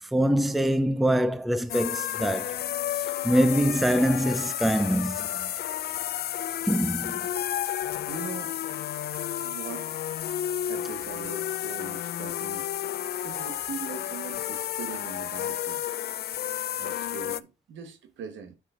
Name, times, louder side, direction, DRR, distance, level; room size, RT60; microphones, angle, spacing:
voice 1, 0.1-2.6 3.2-5.5 6.7-7.3, equal, ahead, 0.5 m, -24 dB
sound 1, 1.7-17.4, left 11 dB, 55° left, 0.4 m, -32 dB
voice 2, 8.1-8.6 9.3-10.0 10.7-12.7 13.2-15.8 16.8-18.6, right 6 dB, 75° right, 1.2 m, -41 dB
9.9 x 6.6 x 2.4 m
cardioid pair, 90°, 20 cm